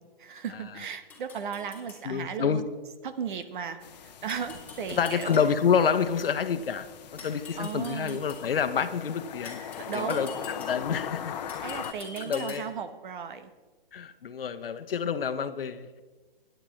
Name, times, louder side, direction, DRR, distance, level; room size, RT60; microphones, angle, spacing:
voice 1, 0.0-2.6 3.0-5.5 7.6-8.2 9.8-10.4 11.6-13.5, right 7 dB, 55° right, 10 dB, 1.2 m, -36 dB
sound 1, 1.1-2.0 4.3-5.8 7.2-8.5 9.4-11.0 11.5-12.9, left 4 dB, 5° left, 3.2 m, -45 dB
voice 2, 2.0-2.6 4.9-6.9 7.1-9.6 9.9-11.4 12.2-12.7 13.9-15.9, left 7 dB, 70° left, 11 dB, 1.0 m, -28 dB
sound 2, 3.8-11.9, left 9 dB, 45° left, 0.8 m, -40 dB
17.0 x 10.0 x 3.2 m, 1.3 s
hypercardioid pair, 140°, 29 cm